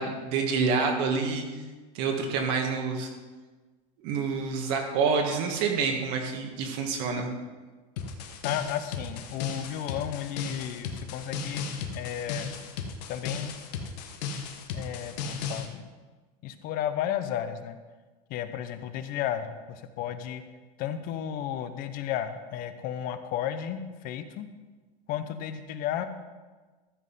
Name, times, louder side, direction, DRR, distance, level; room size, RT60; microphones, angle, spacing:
voice 1, 0.0-1.4 1.9-3.1 4.0-7.3, right 5 dB, 55° right, 2 dB, 1.6 m, -27 dB
sound 1, 8.0-15.7, left 6 dB, 75° left, 1.3 m, -35 dB
voice 2, 8.4-12.5 13.1-13.5 14.7-15.9 16.4-17.8 18.3-20.4 20.8-24.5 25.1-26.1, left 10 dB, 45° left, 10 dB, 0.8 m, -33 dB
13.5 x 5.4 x 5.4 m, 1.3 s
supercardioid pair, 140°, 21 cm